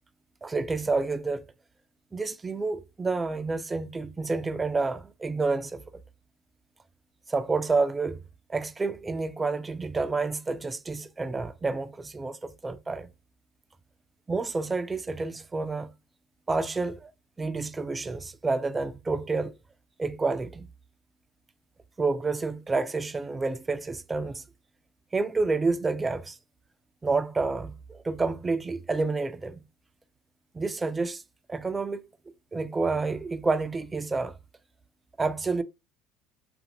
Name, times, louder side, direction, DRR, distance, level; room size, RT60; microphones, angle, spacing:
voice 1, 0.4-1.5 2.1-5.8 7.3-8.2 8.5-13.1 14.3-15.9 16.5-17.1 17.4-19.5 20.0-20.7 22.0-24.4 25.1-26.4 27.0-29.6 30.5-31.2 31.5-32.0 32.5-34.4 35.2-35.6, right 3 dB, 20° right, 0.3 m, -29 dB
2.5 x 2.5 x 2.7 m
hypercardioid pair, 65°, 0 cm